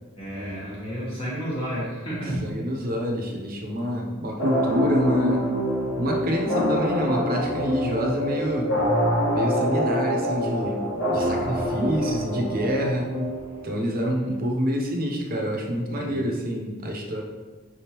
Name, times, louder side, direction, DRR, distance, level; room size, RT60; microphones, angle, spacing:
voice 1, 0.0-2.5 15.9-16.2, equal, 25° left, -9 dB, 1.1 m, -31 dB
voice 2, 2.4-5.4 6.0-8.7 9.3-13.1 13.6-17.2, equal, 40° right, 1 dB, 0.6 m, -27 dB
sound 1, 4.4-13.8, equal, 85° left, 1.5 m, -26 dB
5.0 x 3.5 x 2.9 m, 1.3 s
head